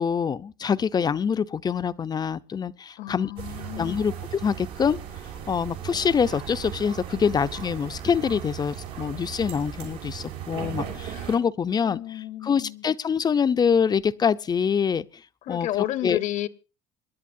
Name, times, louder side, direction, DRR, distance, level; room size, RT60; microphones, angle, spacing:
voice 1, 0.0-3.3 3.8-5.0 5.5-15.1 15.5-15.7 16.0-16.2, left 6 dB, 30° left, 0.6 m, -25 dB
voice 2, 3.0-4.1 11.1-11.3 11.8-12.8 15.5-16.5, left 14 dB, 60° left, 1.0 m, -31 dB
sound 1, 3.4-11.3, right 9 dB, 85° right, 6.6 m, -37 dB
27.5 x 11.0 x 2.7 m
supercardioid pair, 105°, 15 cm